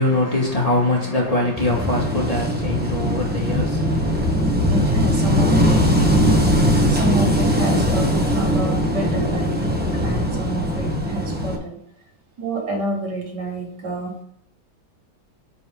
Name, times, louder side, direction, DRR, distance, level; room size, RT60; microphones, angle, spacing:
voice 1, 0.0-4.3, left 2 dB, 20° left, 2.1 m, -23 dB
Wind / Waves surf, 1.6-11.6, equal, 5° right, 1.0 m, -20 dB
voice 2, 4.7-5.5 6.9-11.8 12.4-14.1, right 1 dB, 55° right, 2.6 m, -28 dB
9.9 x 5.5 x 3.8 m
omnidirectional pair, 2.2 m